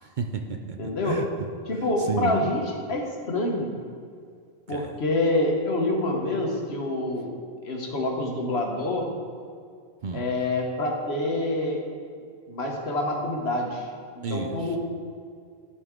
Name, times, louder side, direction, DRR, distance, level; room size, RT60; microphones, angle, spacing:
voice 1, 0.0-0.8 1.0-2.4 4.7-5.0 10.0-10.3 14.2-14.8, right 4 dB, 55° right, 4 dB, 0.6 m, -32 dB
voice 2, 0.8-1.2 1.7-3.7 4.7-7.3 7.6-9.1 10.1-11.8 12.5-13.9 14.1-14.8, left 2 dB, 70° left, 1 dB, 1.4 m, -27 dB
12.5 x 5.5 x 3.7 m, 2.2 s
omnidirectional pair, 1.1 m